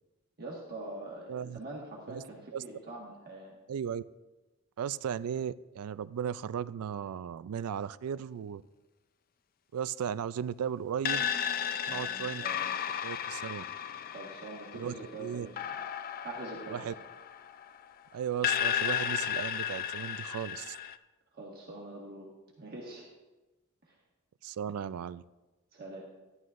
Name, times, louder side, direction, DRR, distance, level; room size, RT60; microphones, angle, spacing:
voice 1, 0.4-3.5 11.9-12.8 14.1-15.6 16.2-16.9 21.3-22.3 22.6-23.1 23.9-24.0 25.7-26.0, right 2 dB, 45° right, -3 dB, 1.5 m, -44 dB
voice 2, 1.3-1.6 2.1-2.2 2.5-2.6 3.7-4.0 4.8-8.6 9.7-11.3 11.9-12.4 13.0-13.6 14.7-15.5 16.7-16.9 18.1-20.8 24.4-25.2, right 8 dB, 80° right, 17 dB, 0.3 m, -36 dB
sound 1, 11.0-17.9 18.4-21.0, left 9 dB, 40° left, 0.3 m, -34 dB
13.5 x 11.0 x 2.5 m, 1.1 s
head